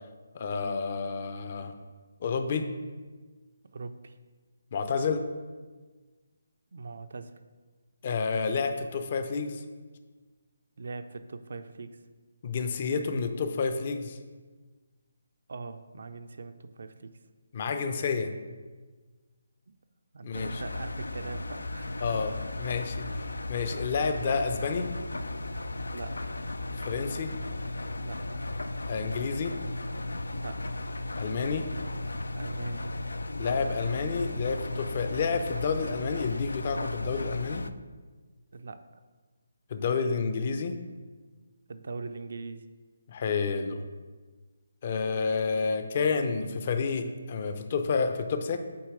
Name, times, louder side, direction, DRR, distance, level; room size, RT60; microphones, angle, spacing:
voice 1, 0.3-1.7 2.2-2.7 4.7-5.2 8.0-9.6 12.4-14.2 17.5-18.3 20.2-20.6 22.0-24.9 26.8-27.3 28.9-29.6 31.2-31.7 33.3-37.6 39.7-40.8 43.1-43.8 44.8-48.6, left 5 dB, 40° left, 7 dB, 0.6 m, -30 dB
voice 2, 3.7-4.2 6.7-7.4 10.8-12.0 15.5-17.2 19.7-19.8 20.1-22.2 25.9-26.3 28.0-28.3 30.4-30.6 32.3-32.8 38.5-38.8 41.7-42.7, right 4 dB, 65° right, 10 dB, 0.4 m, -41 dB
Engine, 20.3-37.7, left 2 dB, 85° left, 0.3 m, -35 dB
8.5 x 2.9 x 4.8 m, 1.4 s
figure-of-eight pair, 155°, 0 cm